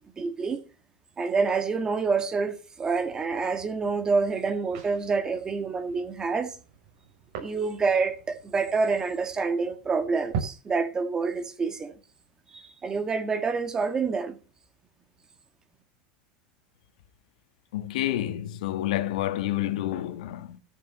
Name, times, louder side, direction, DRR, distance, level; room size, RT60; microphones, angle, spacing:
voice 1, 0.2-0.6 1.2-6.5 7.4-11.9 12.5-14.4, right 4 dB, 15° right, 1.9 m, -27 dB
sound 1, 2.8-10.4, right 8 dB, 65° right, 6.7 m, -42 dB
voice 2, 17.7-20.6, left 13 dB, 90° left, 1.8 m, -29 dB
14.0 x 7.6 x 7.5 m
supercardioid pair, 155°, 4 cm